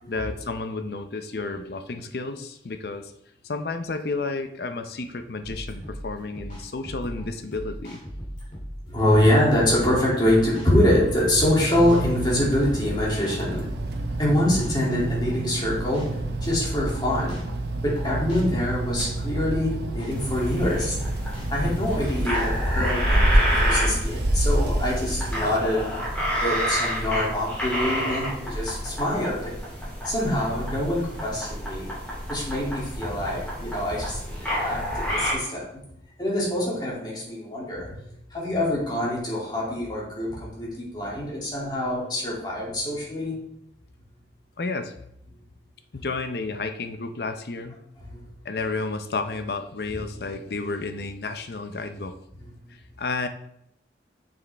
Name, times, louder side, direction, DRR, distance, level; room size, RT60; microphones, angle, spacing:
voice 1, 0.1-3.1 3.4-8.0 44.6-44.9 45.9-47.7 48.4-52.1 52.7-53.3, left 3 dB, 60° left, 8 dB, 0.6 m, -31 dB
sound 1, 5.4-22.6, equal, 45° left, 2.7 m, -38 dB
voice 2, 8.9-13.7 14.2-17.4 17.8-21.0 21.5-25.9 26.3-29.5 30.0-31.9 32.3-35.8 36.2-38.0 38.3-43.4 46.0-46.1 48.1-48.2 50.1-50.3 52.4-52.5, left 1 dB, 25° left, -5 dB, 2.6 m, -25 dB
sound 2, 11.7-25.6, right 1 dB, 70° right, 0.9 m, -27 dB
sound 3, 20.1-35.3, equal, 10° left, 3.1 m, -30 dB
7.2 x 6.4 x 3.4 m, 0.76 s
head